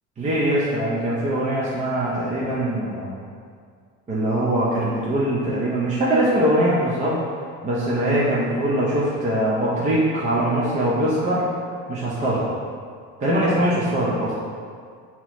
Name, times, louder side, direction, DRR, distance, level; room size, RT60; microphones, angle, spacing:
voice 1, 0.2-3.1 4.1-7.2 7.6-11.5 11.9-12.5 13.2-14.3, right 1 dB, 20° right, -7 dB, 0.6 m, -22 dB
6.0 x 2.9 x 3.0 m, 2.1 s
cardioid pair, 135°, 34 cm